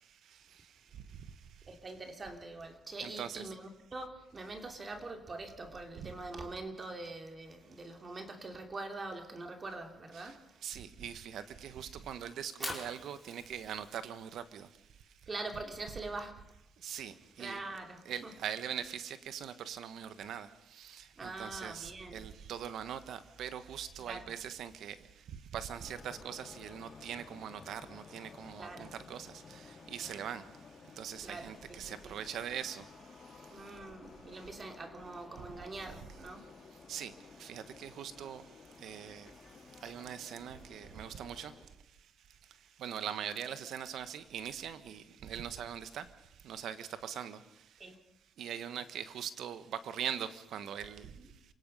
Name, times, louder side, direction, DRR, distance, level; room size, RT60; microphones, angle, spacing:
voice 1, 1.7-10.6 15.3-16.5 17.4-18.3 21.2-22.3 24.0-24.3 28.6-28.9 31.2-31.5 31.9-32.1 33.5-36.5 47.8-48.0 51.2-51.3, right 2 dB, 35° right, 2.9 m, -44 dB
voice 2, 3.0-3.5 6.0-6.1 10.1-10.3 10.6-14.7 16.8-17.6 18.0-25.0 25.5-30.4 31.0-32.8 36.9-37.1 37.4-38.4 38.8-39.3 39.8-41.5 42.8-46.1 46.4-47.4 48.4-51.1, right 9 dB, 75° right, 1.4 m, -42 dB
Fire, 12.3-18.5, equal, 10° right, 5.0 m, -48 dB
sound 1, 25.8-41.6, left 4 dB, 40° left, 4.3 m, -54 dB
27.5 x 17.5 x 5.6 m
cardioid pair, 90°, 0 cm